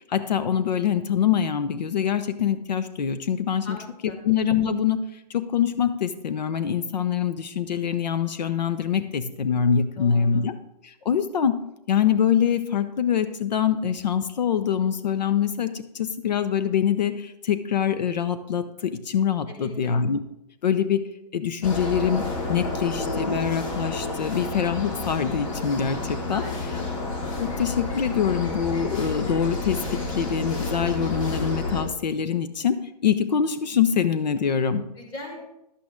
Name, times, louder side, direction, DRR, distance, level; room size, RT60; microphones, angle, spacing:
voice 1, 0.1-3.8 4.0-5.0 5.3-10.5 10.8-11.5 11.9-20.2 20.6-21.0 21.3-26.4 27.4-32.8 33.0-34.8, left 8 dB, 90° left, 12 dB, 0.8 m, -24 dB
voice 2, 10.0-10.4 19.5-20.0 26.3-26.9 35.0-35.4, left 2 dB, 20° left, 1 dB, 2.1 m, -40 dB
sound 1, 21.6-31.8, left 2 dB, 50° left, 2.5 m, -30 dB
11.5 x 8.4 x 3.7 m, 0.85 s
hypercardioid pair, 160°, 21 cm